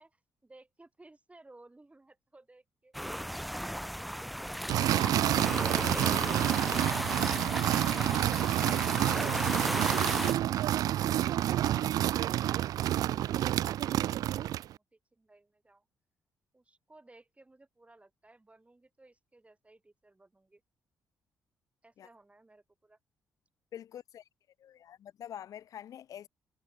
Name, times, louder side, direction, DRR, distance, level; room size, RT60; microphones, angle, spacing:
voice 1, 0.0-2.9 13.0-15.8 16.5-20.6 21.8-23.0, right 2 dB, 20° right, 5.9 m, -59 dB
sound 1, 2.9-10.3, equal, ahead, 1.0 m, -35 dB
sound 2, 4.7-14.7, right 12 dB, 70° right, 0.4 m, -28 dB
voice 2, 23.7-24.2 24.6-26.3, left 10 dB, 65° left, 0.5 m, -45 dB
supercardioid pair, 55°, 6 cm